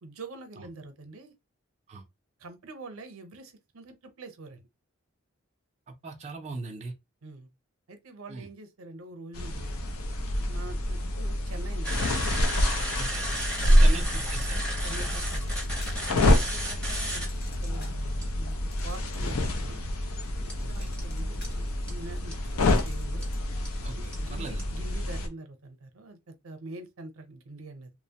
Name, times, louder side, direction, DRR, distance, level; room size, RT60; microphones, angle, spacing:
voice 1, 0.0-1.3 2.4-4.7 7.2-7.5 7.9-9.8 10.4-11.9 13.6-14.1 14.8-15.5 16.1-17.3 17.6-18.6 18.8-19.9 20.4-23.3 24.0-27.9, right 2 dB, 80° right, 0.6 m, -45 dB
voice 2, 5.9-6.9 8.3-8.5 13.0-13.3 13.8-14.6 20.8-20.9 23.8-24.7, right 3 dB, 30° right, 0.4 m, -39 dB
sound 1, 9.3-25.3, left 1 dB, 90° left, 0.6 m, -27 dB
sound 2, 11.8-17.3 17.6-17.7 18.2-18.4 20.5-20.6 21.0-21.1 21.4-21.5 21.9-22.0 22.3-22.4 22.8-22.9 23.2-23.3 23.7-23.8 24.1-24.2 24.6-24.7, equal, 5° left, 0.7 m, -34 dB
sound 3, 13.3-14.3 14.8-16.2 16.7-19.6 20.0-23.6, left 3 dB, 45° left, 0.8 m, -51 dB
2.9 x 2.1 x 2.7 m
head